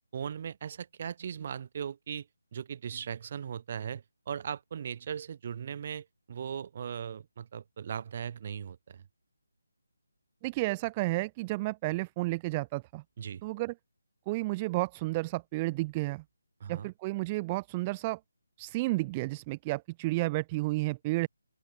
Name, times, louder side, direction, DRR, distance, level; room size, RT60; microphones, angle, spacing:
voice 1, 0.1-9.1 13.2-13.4 16.6-16.9, right 8 dB, 30° right, 7.0 m, -38 dB
voice 2, 10.4-13.0 13.4-13.7 14.3-16.2 16.7-18.2 18.6-21.3, right 21 dB, 15° right, 0.8 m, -31 dB
open air
hypercardioid pair, 170°, 0 cm